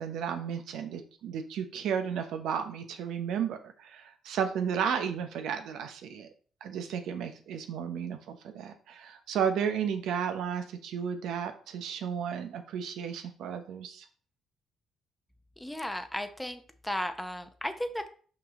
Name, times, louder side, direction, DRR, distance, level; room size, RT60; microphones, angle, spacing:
voice 1, 0.0-6.3 6.6-14.1, right 7 dB, 80° right, 7 dB, 0.9 m, -33 dB
voice 2, 15.6-18.1, left 1 dB, 5° left, 7 dB, 0.8 m, -35 dB
5.7 x 5.3 x 3.7 m, 0.44 s
supercardioid pair, 75°, 0 cm